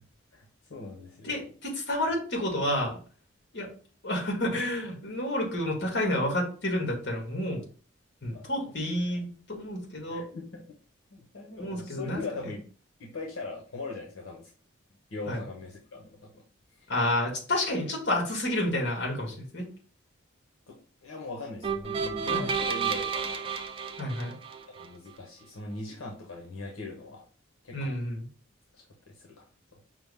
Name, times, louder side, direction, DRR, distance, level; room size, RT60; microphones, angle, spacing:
voice 1, 0.3-1.5 8.3-8.5 8.8-9.4 10.1-10.7 11.1-12.6 13.0-14.5 15.1-16.4 16.7-16.9 20.7-23.5 24.2-24.4 24.8-27.2 27.6-28.0 28.7-29.4 29.7-29.8, left 3 dB, 80° left, 0 dB, 0.8 m, -41 dB
voice 2, 1.2-3.0 3.5-3.7 4.0-7.6 8.2-9.2 9.5-10.2 11.6-12.2 15.3-15.4 16.9-19.7 22.3-22.5 24.0-24.3 27.7-28.3, left 1 dB, 55° left, 0 dB, 1.5 m, -30 dB
sound 1, 21.6-24.9, right 6 dB, 25° right, 0.3 m, -31 dB
5.8 x 2.0 x 3.4 m, 0.41 s
head